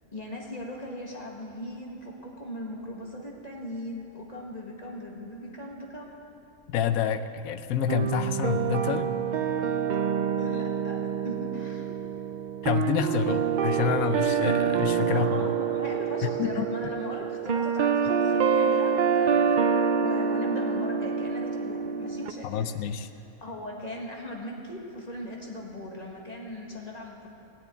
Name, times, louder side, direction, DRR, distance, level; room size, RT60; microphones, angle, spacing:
voice 1, 0.1-6.2 9.9-10.0 10.4-12.0 15.0-19.6 20.0-22.7 23.1-27.3, left 1 dB, 30° left, -1 dB, 1.8 m, -39 dB
voice 2, 6.7-9.1 12.6-15.5 16.2-16.7 22.4-23.1, left 8 dB, 80° left, 11 dB, 1.1 m, -28 dB
sound 1, 7.9-22.3, right 7 dB, 80° right, 0.4 m, -26 dB
16.5 x 6.9 x 9.2 m, 2.8 s
omnidirectional pair, 1.5 m